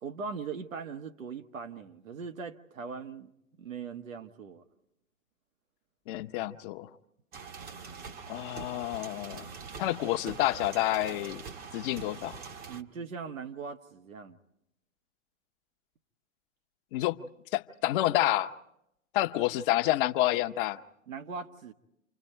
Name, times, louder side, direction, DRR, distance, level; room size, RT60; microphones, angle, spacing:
voice 1, 0.0-3.3 3.6-4.6 12.7-14.4 21.1-21.7, right 5 dB, 80° right, 1.5 m, -40 dB
voice 2, 6.1-6.9 8.3-9.5 9.8-11.4 11.7-12.4 16.9-17.2 17.5-18.5 19.1-20.8, left 15 dB, 40° left, 0.9 m, -29 dB
sound 1, 7.3-12.8, right 5 dB, 25° right, 0.9 m, -44 dB
29.0 x 24.5 x 4.5 m
hypercardioid pair, 115°, 40 cm